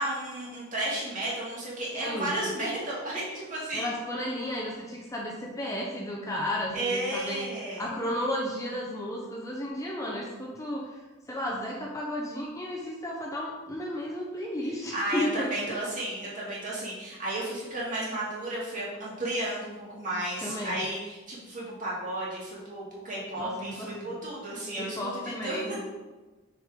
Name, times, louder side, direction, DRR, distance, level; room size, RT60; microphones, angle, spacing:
voice 1, 0.0-3.9 6.7-7.8 14.9-25.6, right 1 dB, 35° right, -6 dB, 2.2 m, -33 dB
voice 2, 1.9-2.4 3.7-7.4 7.8-11.0 11.3-15.8 20.4-20.8 23.4-24.1 24.8-25.8, left 1 dB, 15° left, -2 dB, 0.6 m, -33 dB
6.1 x 4.9 x 3.7 m, 1.2 s
head